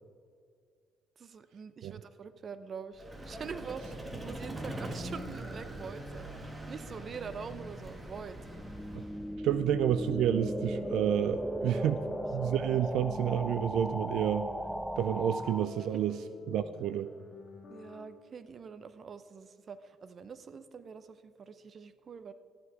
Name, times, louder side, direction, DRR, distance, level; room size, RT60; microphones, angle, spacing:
voice 1, 1.2-8.4 9.5-9.6 11.7-11.9 15.8-15.9 17.7-22.3, right 6 dB, 45° right, 13 dB, 0.7 m, -45 dB
Vehicle, 2.9-9.4, right 1 dB, 25° right, 1.8 m, -42 dB
sound 1, 6.6-15.7, equal, 5° right, 0.6 m, -37 dB
voice 2, 9.4-12.0 12.3-14.5 15.0-16.2 16.5-17.1, right 10 dB, 70° right, 13 dB, 0.4 m, -29 dB
sound 2, 9.8-18.1, left 4 dB, 55° left, 1.6 m, -50 dB
13.5 x 8.3 x 4.7 m, 2.3 s
supercardioid pair, 65°, 0 cm